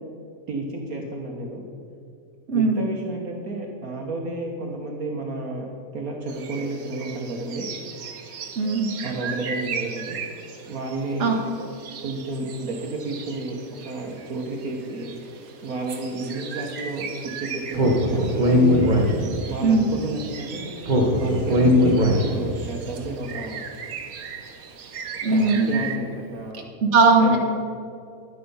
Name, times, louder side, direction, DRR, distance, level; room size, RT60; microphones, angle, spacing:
voice 1, 0.5-1.6 2.5-7.7 9.0-10.2 10.7-11.3 12.0-13.6 13.8-15.1 15.6-18.9 19.5-20.7 21.2-23.6 25.3-26.7 27.2-27.4, right 2 dB, 60° right, 1 dB, 1.6 m, -31 dB
voice 2, 2.5-2.8 8.6-8.9 11.2-11.3 19.6-19.9 25.2-25.8 26.9-27.4, right 3 dB, 45° right, 1 dB, 1.6 m, -18 dB
sound 1, 6.3-26.0, right 6 dB, 75° right, 1.6 m, -38 dB
Speech, 17.7-19.6 20.8-22.6, left 1 dB, 30° right, 1.3 m, -19 dB
11.0 x 9.4 x 5.6 m, 2.3 s
omnidirectional pair, 1.8 m